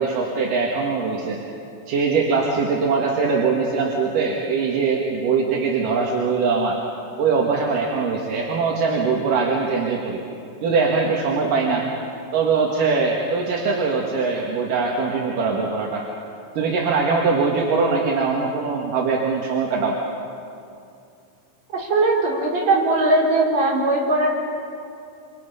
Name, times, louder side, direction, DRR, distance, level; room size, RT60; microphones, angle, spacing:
voice 1, 0.0-1.4 1.9-6.8 7.2-10.2 10.6-11.9 12.3-16.0 16.6-20.0, right 4 dB, 55° right, -2 dB, 2.8 m, -22 dB
voice 2, 21.7-24.3, right 2 dB, 35° right, -4 dB, 5.0 m, -19 dB
28.0 x 26.5 x 5.6 m, 2.6 s
omnidirectional pair, 5.6 m